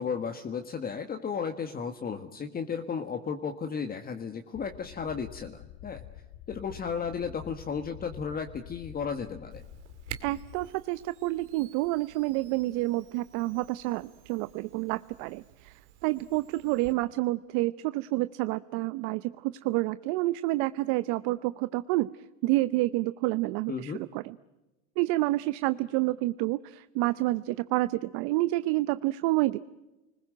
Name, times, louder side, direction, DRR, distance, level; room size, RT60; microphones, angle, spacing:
voice 1, 0.0-6.0 6.5-9.6 23.7-24.0, left 6 dB, 25° left, 6 dB, 1.6 m, -34 dB
sound 1, 4.5-10.7, left 12 dB, 75° left, 2.1 m, -48 dB
Camera, 9.5-16.9, right 12 dB, 85° right, 2.3 m, -50 dB
voice 2, 10.2-22.1 22.4-24.4 25.0-29.6, right 19 dB, 65° right, 14 dB, 0.8 m, -29 dB
30.0 x 20.5 x 7.8 m, 1.1 s
supercardioid pair, 110°, 34 cm